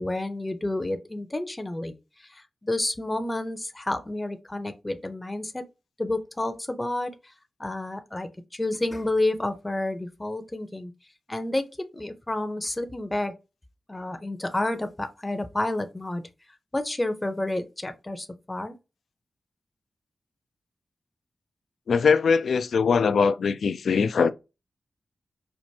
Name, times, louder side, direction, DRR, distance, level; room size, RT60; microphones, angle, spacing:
voice 1, 0.0-5.6 6.0-7.3 7.6-10.9 11.3-13.4 13.9-16.2 16.7-18.8, left 2 dB, 20° left, 0.6 m, -30 dB
voice 2, 21.9-24.3, left 5 dB, 85° left, 0.3 m, -21 dB
4.5 x 2.5 x 2.7 m
cardioid pair, 75°, 0 cm